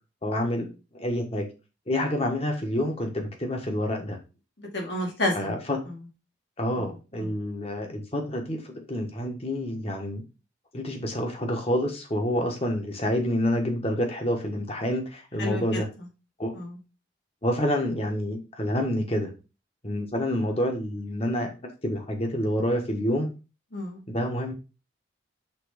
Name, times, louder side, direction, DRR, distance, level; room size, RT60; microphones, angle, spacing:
voice 1, 0.2-0.7 0.9-1.5 1.9-4.2 5.3-5.8 6.6-10.2 10.7-15.9 16.4-16.5 17.4-19.3 19.8-21.5 21.8-23.3 24.1-24.5, equal, 30° left, 3 dB, 1.4 m, -28 dB
voice 2, 4.6-5.5 6.7-6.9 7.1-7.3 15.4-15.8 16.5-16.8 23.7-24.0, left 1 dB, 65° left, 0 dB, 2.5 m, -30 dB
6.0 x 3.8 x 5.0 m, 0.30 s
head